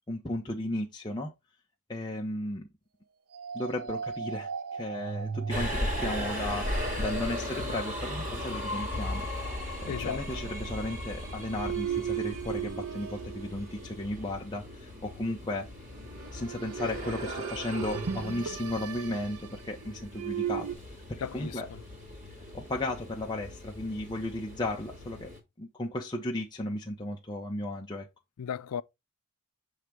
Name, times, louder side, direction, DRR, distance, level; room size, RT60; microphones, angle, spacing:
voice 1, 0.1-1.3 1.9-2.7 3.5-15.7 16.3-20.7 21.1-21.7 22.5-25.3 25.6-28.1, left 1 dB, 20° left, 0.6 m, -35 dB
sound 1, 3.3-14.4 15.9-20.7, right 7 dB, 75° right, 0.6 m, -38 dB
Subway metro underground, 5.5-25.4, left 1 dB, 35° right, 2.1 m, -37 dB
voice 2, 9.9-10.2 21.2-21.6 28.4-28.8, left 7 dB, 85° left, 0.4 m, -35 dB
6.5 x 3.3 x 4.5 m
head